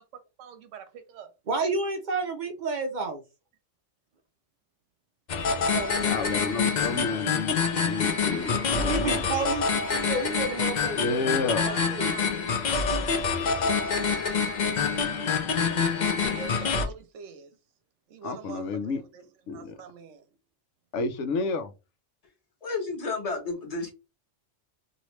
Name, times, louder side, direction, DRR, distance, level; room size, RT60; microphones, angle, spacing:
voice 1, 0.4-1.3 11.6-12.5 16.3-17.5 18.1-19.2 19.5-20.2, right 7 dB, 75° right, 1.0 m, -44 dB
voice 2, 1.5-3.2 5.7-6.2 8.8-12.1, right 3 dB, 55° right, 0.5 m, -31 dB
sound 1, 5.3-16.9, left 5 dB, 50° left, 0.6 m, -26 dB
voice 3, 6.0-9.2 10.9-11.6 18.2-19.0 19.5-19.7 20.9-21.7, left 4 dB, 75° left, 0.9 m, -30 dB
voice 4, 22.6-23.9, left 3 dB, 30° left, 1.1 m, -31 dB
2.9 x 2.8 x 3.1 m
omnidirectional pair, 1.3 m